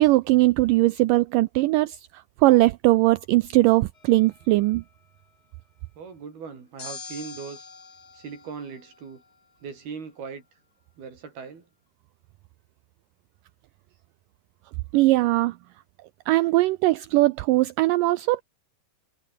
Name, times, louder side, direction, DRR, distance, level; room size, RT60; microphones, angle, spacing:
voice 1, 0.0-4.8 14.9-15.6 16.3-18.4, right 19 dB, 90° right, 1.9 m, -20 dB
sound 1, 3.9-4.9 6.8-9.4, left 5 dB, 30° left, 2.2 m, -45 dB
voice 2, 6.0-7.7 8.1-9.2 9.6-10.5 11.0-11.7, right 5 dB, 70° right, 6.8 m, -39 dB
omnidirectional pair, 4.5 m